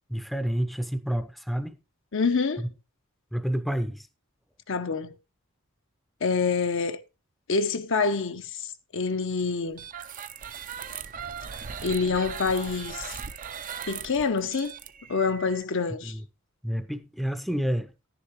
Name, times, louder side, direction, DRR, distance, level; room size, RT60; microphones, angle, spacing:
voice 1, 0.1-1.8 3.3-4.1 16.0-16.2 16.6-18.1, equal, ahead, 0.6 m, -29 dB
voice 2, 2.1-2.7 4.7-5.1 6.2-7.0 7.5-9.8 11.8-13.2 13.9-14.7 15.1-16.1, left 4 dB, 65° left, 0.8 m, -26 dB
sound 1, 9.7-15.6, right 7 dB, 40° right, 0.5 m, -39 dB
11.0 x 10.0 x 3.1 m
head